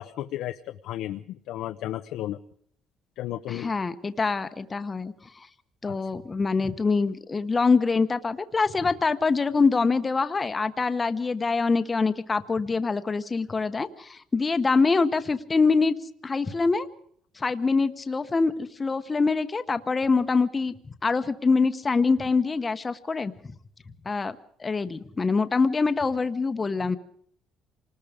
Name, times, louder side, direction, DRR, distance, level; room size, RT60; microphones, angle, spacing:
voice 1, 0.0-2.4 3.2-3.7 5.9-6.0, left 13 dB, 75° left, 9 dB, 0.9 m, -33 dB
voice 2, 3.5-5.1 5.8-16.0 16.2-16.9 17.4-18.5 18.8-20.7 21.0-23.3 24.0-27.0, left 4 dB, 20° left, 11 dB, 1.0 m, -24 dB
27.0 x 19.5 x 5.1 m, 0.62 s
cardioid pair, 155°, 0 cm